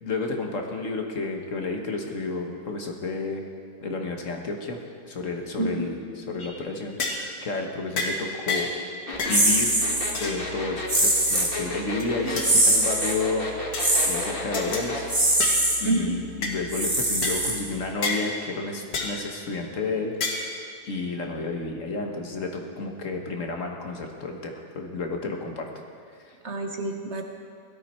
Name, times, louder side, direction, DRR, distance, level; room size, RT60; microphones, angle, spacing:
voice 1, 0.0-3.4 3.8-4.8 5.1-8.7 9.3-9.8 10.2-13.7 14.1-15.1 15.8-20.3 20.9-25.7 26.2-26.4, left 3 dB, 55° left, 3 dB, 1.5 m, -31 dB
sound 1, 6.4-6.6 7.0-7.3 8.0-8.2 8.5-8.8 9.2-9.4 10.1-10.4 10.9-11.4 12.0-12.5 12.9-13.3 13.7-13.9 14.5-14.9 15.4-15.6 16.4-16.6 17.2-17.4 18.0-18.2 18.9-19.2 20.2-20.5, left 3 dB, 75° left, 1.9 m, -30 dB
sound 2, 9.1-15.1, left 2 dB, 35° left, 1.7 m, -33 dB
sound 3, 9.3-10.1 10.9-11.6 12.4-13.2 13.8-14.3 15.1-15.8 16.7-17.9, right 1 dB, 15° right, 1.8 m, -22 dB
voice 2, 15.8-16.2 26.4-27.2, right 2 dB, 50° right, 4 dB, 1.1 m, -27 dB
17.0 x 12.5 x 4.4 m, 2.2 s
omnidirectional pair, 1.7 m